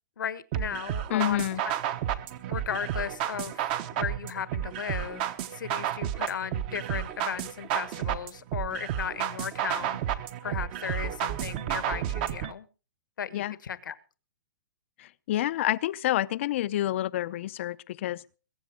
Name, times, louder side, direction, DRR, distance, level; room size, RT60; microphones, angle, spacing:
voice 1, 0.2-1.4 2.5-10.2 10.4-12.7 13.2-13.9, left 8 dB, 85° left, 1.4 m, -36 dB
sound 1, 0.5-12.5, right 11 dB, 30° right, 0.9 m, -32 dB
voice 2, 1.1-1.6 13.3-13.5 15.0-18.2, left 13 dB, 40° left, 0.6 m, -28 dB
22.0 x 8.5 x 4.9 m
hypercardioid pair, 165°, 10 cm